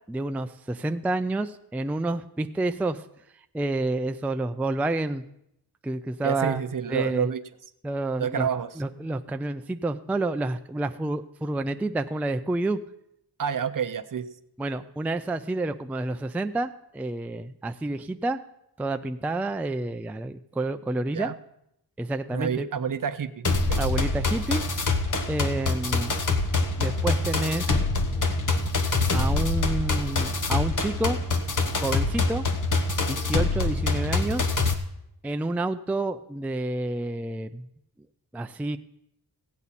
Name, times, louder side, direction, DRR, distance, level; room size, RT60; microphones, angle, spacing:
voice 1, 0.1-3.0 3.5-5.2 5.8-6.6 6.9-7.3 7.8-8.5 8.8-12.8 14.6-18.4 18.8-21.3 22.0-22.7 23.8-24.6 25.3-26.2 26.8-27.8 28.9-31.2 31.7-32.5 33.1-34.5 35.2-37.7 38.3-38.8, right 2 dB, 5° right, 8 dB, 0.3 m, -29 dB
voice 2, 6.2-7.4 8.2-8.7 13.4-14.3 21.1-21.3 22.3-23.8, right 7 dB, 55° right, 12 dB, 0.6 m, -29 dB
sound 1, 23.4-34.7, left 3 dB, 50° left, 1.0 m, -25 dB
16.5 x 8.6 x 4.1 m, 0.79 s
wide cardioid pair, 110°, 40 cm